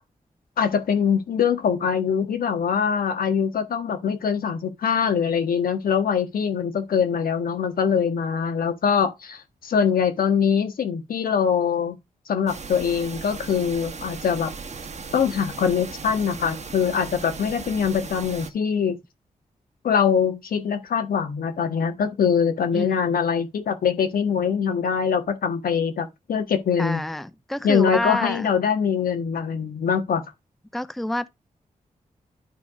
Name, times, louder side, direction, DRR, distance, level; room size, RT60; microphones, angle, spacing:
voice 1, 0.6-12.0 12.3-14.5 15.1-19.0 19.8-27.0 27.6-30.2, left 7 dB, 90° left, 1.4 m, -23 dB
sound 1, 12.5-18.5, right 4 dB, 50° right, 1.3 m, -37 dB
voice 2, 22.7-23.2 26.8-28.5 30.7-31.3, left 1 dB, ahead, 0.6 m, -28 dB
10.5 x 3.6 x 4.8 m
cardioid pair, 60°, 15 cm